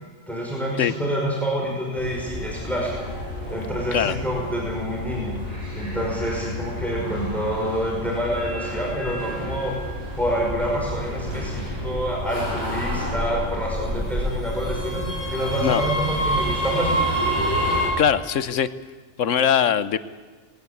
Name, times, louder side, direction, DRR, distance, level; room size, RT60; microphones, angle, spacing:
voice 1, 0.3-2.9 3.5-5.3 5.7-16.9, equal, ahead, -3 dB, 5.3 m, -27 dB
sound 1, 2.0-17.9, equal, 30° right, 7.0 m, -29 dB
voice 2, 18.0-18.7 19.2-20.0, left 8 dB, 75° left, 15 dB, 1.3 m, -21 dB
19.5 x 19.0 x 8.5 m, 1.5 s
omnidirectional pair, 1.3 m